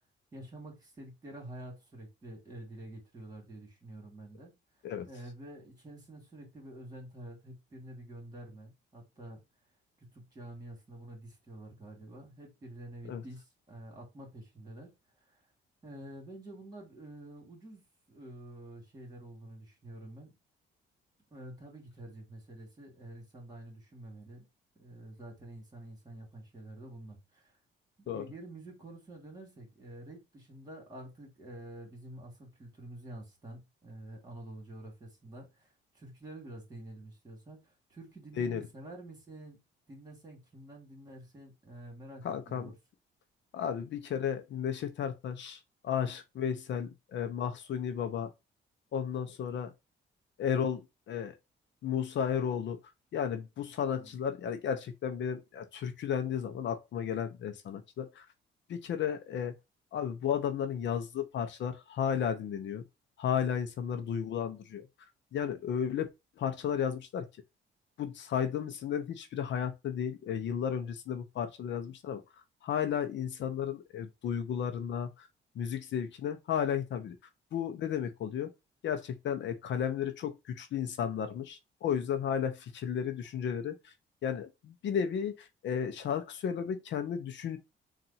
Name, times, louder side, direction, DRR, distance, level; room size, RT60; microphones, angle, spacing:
voice 1, 0.3-4.5 5.1-9.4 10.0-14.9 15.8-17.8 18.1-20.4 21.3-24.5 24.8-27.6 28.0-39.6 39.9-42.7 53.9-54.1, right 1 dB, 20° right, 2.6 m, -48 dB
voice 2, 42.2-42.7 43.5-48.3 48.9-49.7 50.4-50.8 51.1-51.3 51.8-52.8 53.1-58.3 58.7-59.5 59.9-62.8 63.2-64.9 65.3-66.1 66.4-67.3 68.0-72.2 72.6-75.3 75.5-77.2 77.5-78.5 78.8-83.9 84.2-87.6, left 8 dB, 65° left, 0.7 m, -33 dB
3.9 x 2.5 x 4.2 m
cardioid pair, 90°, 20 cm